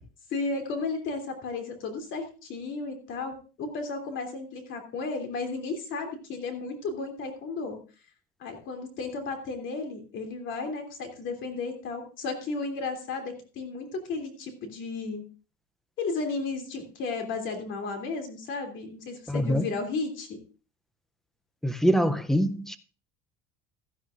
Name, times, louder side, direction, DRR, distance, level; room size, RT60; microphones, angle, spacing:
voice 1, 0.3-7.8 8.4-15.2 16.0-20.3, left 3 dB, 40° left, 2.9 m, -34 dB
voice 2, 19.3-19.7 21.6-22.8, equal, ahead, 0.5 m, -24 dB
16.5 x 12.0 x 2.5 m
cardioid pair, 165°, 30 cm